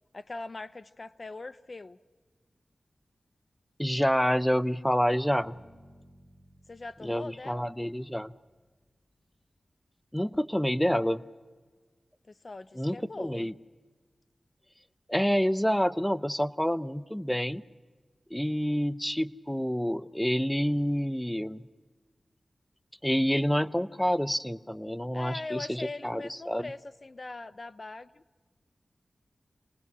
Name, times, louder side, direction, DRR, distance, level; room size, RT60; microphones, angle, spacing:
voice 1, 0.1-2.0 6.7-7.7 12.3-13.5 25.1-28.2, left 3 dB, 50° left, 14 dB, 0.7 m, -41 dB
voice 2, 3.8-5.6 7.0-8.3 10.1-11.2 12.8-13.5 15.1-17.6 18.3-21.6 23.0-26.7, equal, 5° left, 14 dB, 0.7 m, -28 dB
Bass guitar, 5.4-9.3, equal, 30° left, 4.9 m, -59 dB
28.0 x 19.5 x 6.2 m, 1.5 s
cardioid pair, 55°, 0 cm